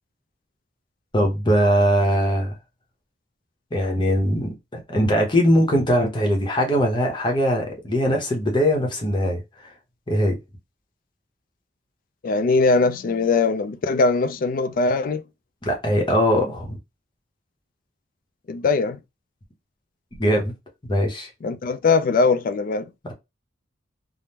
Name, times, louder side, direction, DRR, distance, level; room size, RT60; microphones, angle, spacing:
voice 1, 1.1-2.5 3.7-4.6 4.9-9.7 10.1-10.4 15.6-16.8 20.2-20.5 20.9-21.3, equal, 25° left, 0.8 m, -21 dB
voice 2, 12.2-15.2 18.5-19.0 21.4-22.9, left 4 dB, 45° left, 0.3 m, -21 dB
3.5 x 2.0 x 2.7 m
head